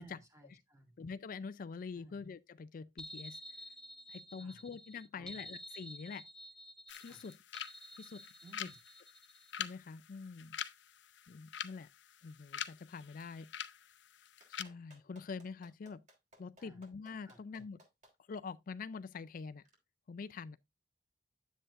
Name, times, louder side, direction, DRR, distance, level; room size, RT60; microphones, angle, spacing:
voice 1, 0.0-1.0 1.9-2.2 4.4-4.6 5.1-5.4 7.1-7.3 8.4-8.8 16.6-16.8 17.2-17.4, right 2 dB, 20° right, 2.4 m, -59 dB
voice 2, 1.0-3.4 4.1-6.2 7.0-7.3 8.0-8.2 8.6-8.7 9.6-10.6 11.3-11.9 12.2-13.5 14.5-16.0 16.4-17.8 18.3-19.6 20.1-20.6, left 5 dB, 50° left, 0.4 m, -45 dB
sound 1, 3.0-9.6, equal, 5° left, 0.6 m, -51 dB
sound 2, 6.9-14.6, left 9 dB, 85° left, 0.7 m, -46 dB
Clapping, 14.4-18.1 19.7-19.8, equal, 45° right, 3.5 m, -62 dB
10.0 x 7.9 x 2.5 m
head